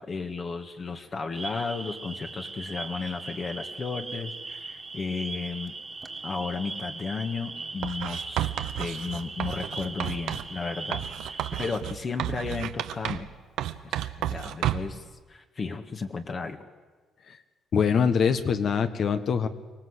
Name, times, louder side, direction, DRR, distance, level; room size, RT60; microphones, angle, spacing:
voice 1, 0.0-5.7 6.2-8.5 8.8-13.3 13.8-13.9 14.3-15.0 15.3-16.6, left 4 dB, 40° left, 5 dB, 1.8 m, -34 dB
sound 1, 1.3-11.7, right 3 dB, 25° right, 1.9 m, -39 dB
Writing, 7.8-10.5 10.9-13.3 13.6-15.0, right 12 dB, 90° right, 0.8 m, -32 dB
voice 2, 17.7-19.5, left 6 dB, 60° left, 9 dB, 1.6 m, -24 dB
24.5 x 18.0 x 8.2 m, 1.4 s
cardioid pair, 90°, 0 cm